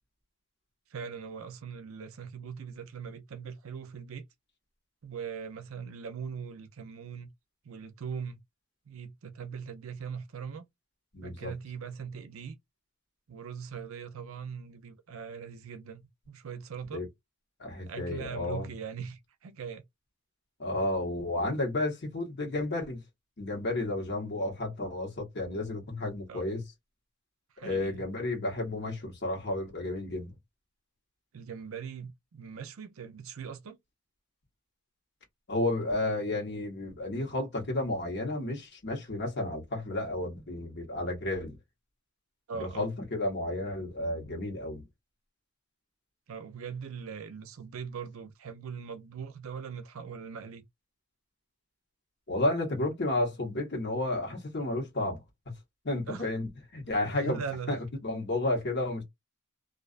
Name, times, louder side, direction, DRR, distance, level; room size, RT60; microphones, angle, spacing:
voice 1, 0.9-4.2 5.0-7.3 7.6-8.4 8.9-10.7 11.2-12.6 13.3-17.0 17.9-19.8 26.3-26.4 27.5-28.0 31.3-33.8 42.5-42.9 46.3-50.6 56.1-56.2 57.1-57.8, right 6 dB, 75° right, 0.5 m, -41 dB
voice 2, 11.1-11.5 16.9-17.1 17.6-18.7 20.6-23.0 23.4-26.6 27.6-30.3 35.5-41.6 42.6-44.8 52.3-55.2 55.8-57.4 57.7-59.0, left 2 dB, 50° left, 1.1 m, -32 dB
2.4 x 2.3 x 2.4 m
head